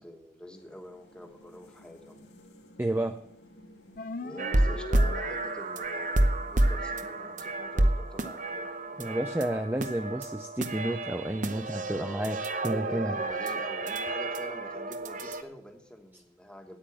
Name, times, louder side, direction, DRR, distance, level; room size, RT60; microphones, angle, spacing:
voice 1, 0.0-2.3 4.2-9.2 11.8-16.8, equal, 5° left, 3 dB, 1.3 m, -47 dB
sound 1, 0.5-9.9, left 1 dB, 85° left, 2.5 m, -57 dB
voice 2, 2.8-3.2 9.0-12.4 12.6-13.2, right 1 dB, 10° right, 6 dB, 0.4 m, -31 dB
sound 2, 4.0-5.9, left 3 dB, 50° left, 0.5 m, -40 dB
sound 3, 4.4-15.4, right 1 dB, 45° right, 0.7 m, -30 dB
9.3 x 8.7 x 7.5 m, 0.72 s
head